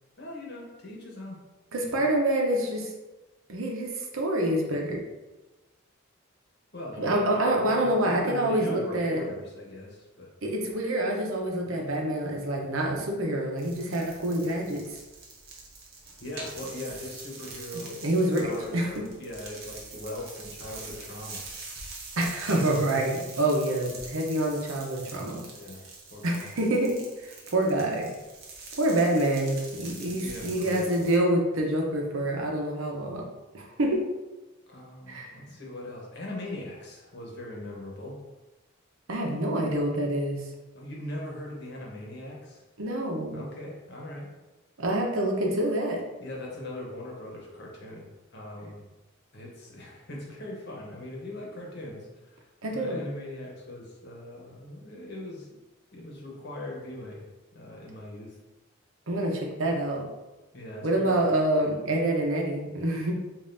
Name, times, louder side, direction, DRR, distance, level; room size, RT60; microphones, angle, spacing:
voice 1, 0.2-1.4 1.9-2.0 6.7-10.3 16.2-18.1 18.3-21.4 25.4-25.8 26.1-26.5 30.2-31.0 34.7-38.2 40.7-42.6 43.3-44.3 46.2-48.8 49.3-55.5 55.9-57.3 57.5-58.4 60.5-61.1, left 1 dB, 55° left, -2 dB, 1.0 m, -40 dB
voice 2, 1.7-2.9 3.5-5.0 7.0-9.3 10.4-14.8 18.0-18.9 22.2-25.4 26.2-28.1 28.8-33.2 33.5-34.0 35.1-35.3 39.1-40.4 42.8-43.4 44.8-46.0 52.6-53.1 59.1-60.0 60.8-63.1, right 1 dB, 80° right, 1 dB, 0.8 m, -27 dB
sound 1, 13.6-31.2, right 3 dB, 50° right, 0.8 m, -44 dB
5.3 x 2.5 x 2.6 m, 1.1 s
head